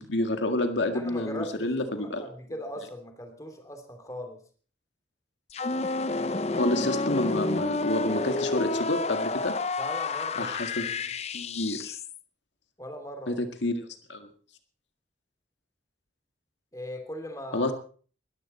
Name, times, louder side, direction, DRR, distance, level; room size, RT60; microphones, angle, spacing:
voice 1, 0.0-2.2 6.6-9.6 10.4-10.9 11.3-12.0 13.3-14.3 17.5-17.7, left 1 dB, 80° left, 6 dB, 1.9 m, -29 dB
voice 2, 0.9-4.4 9.8-10.5 12.8-13.5 16.7-17.7, equal, 20° left, 6 dB, 3.1 m, -39 dB
sound 1, 5.5-12.2, left 3 dB, 35° left, 0.6 m, -30 dB
21.0 x 14.0 x 4.4 m, 0.42 s
head